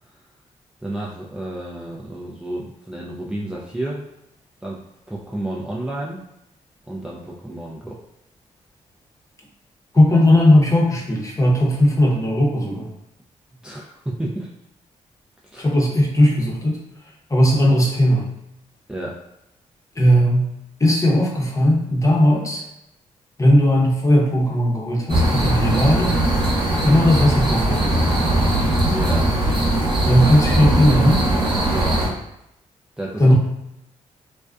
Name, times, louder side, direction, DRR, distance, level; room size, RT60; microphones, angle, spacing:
voice 1, 0.8-4.0 4.6-6.3 6.9-8.0 13.6-14.5 15.4-15.7 17.7-17.8 18.9-19.2 28.8-29.4 31.7-32.1 33.0-33.3, right 1 dB, 5° right, -4 dB, 0.3 m, -31 dB
voice 2, 9.9-12.9 15.6-16.8 17.3-18.3 20.0-20.5 20.8-22.6 23.4-26.2 26.8-28.1 30.1-31.3 33.2-33.3, left 1 dB, 25° left, -2 dB, 0.7 m, -17 dB
sound 1, 25.1-32.1, right 1 dB, 35° right, 0.9 m, -20 dB
2.4 x 2.2 x 2.3 m, 0.83 s
cardioid pair, 60°, 13 cm